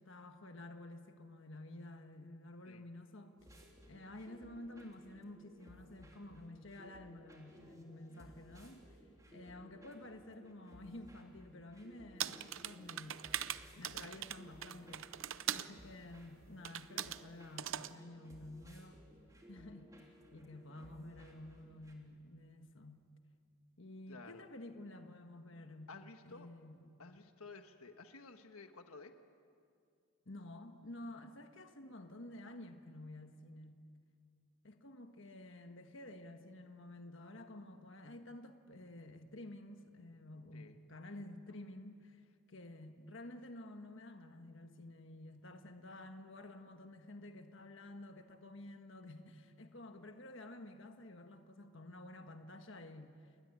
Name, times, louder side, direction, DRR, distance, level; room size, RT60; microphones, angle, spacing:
voice 1, 0.0-3.4 3.9-9.0 9.3-13.3 13.7-15.1 15.5-19.0 19.5-23.1 23.8-25.9 26.2-27.0 30.2-33.9 34.6-53.3, left 1 dB, 55° left, 1.5 m, -51 dB
sound 1, 3.4-21.9, equal, 15° right, 3.1 m, -60 dB
sound 2, 12.2-15.7 16.6-17.2 17.6-17.9, right 11 dB, 60° right, 0.7 m, -41 dB
voice 2, 24.1-24.4 25.9-26.5 27.0-29.1 40.5-40.8, left 4 dB, 75° left, 1.4 m, -53 dB
28.5 x 21.0 x 9.8 m
head